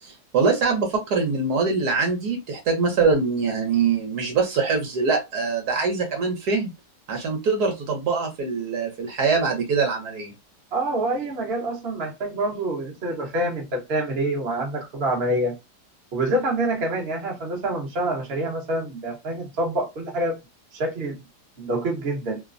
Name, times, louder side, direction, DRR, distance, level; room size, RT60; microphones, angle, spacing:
voice 1, 0.0-6.7 7.1-10.3, right 4 dB, 70° right, 1.3 m, -23 dB
voice 2, 10.7-15.6 16.1-20.4 20.7-21.2 21.6-22.4, right 1 dB, 45° right, 1.0 m, -26 dB
3.1 x 2.1 x 2.4 m
omnidirectional pair, 1.9 m